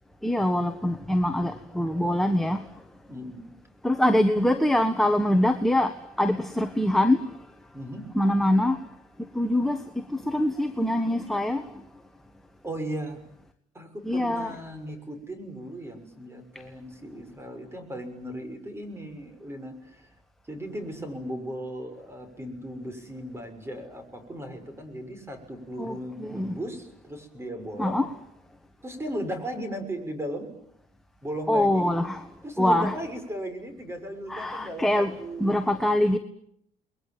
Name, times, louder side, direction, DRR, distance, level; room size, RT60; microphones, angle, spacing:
voice 1, 0.2-2.7 3.8-7.3 8.1-8.8 9.3-11.7 14.0-14.5 25.8-26.6 27.8-28.1 31.5-32.2 32.6-32.9 34.3-35.1 35.4-36.2, left 1 dB, ahead, 1.4 m, -24 dB
voice 2, 3.1-3.5 7.7-8.0 12.6-13.2 13.7-20.1 20.5-28.0 28.8-30.5 31.2-31.9 32.4-35.6, equal, 15° right, 6.5 m, -36 dB
29.5 x 22.0 x 9.3 m
cardioid pair, 110°, 17 cm